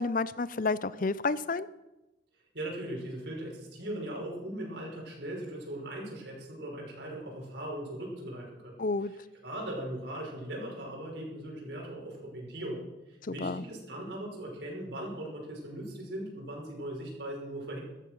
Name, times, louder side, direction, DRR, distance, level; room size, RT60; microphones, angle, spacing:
voice 1, 0.0-1.7 8.8-9.1 13.2-13.6, left 3 dB, 45° left, 17 dB, 0.6 m, -30 dB
voice 2, 2.5-17.8, right 1 dB, 65° right, -2 dB, 5.9 m, -39 dB
14.5 x 13.5 x 6.3 m, 1.0 s
head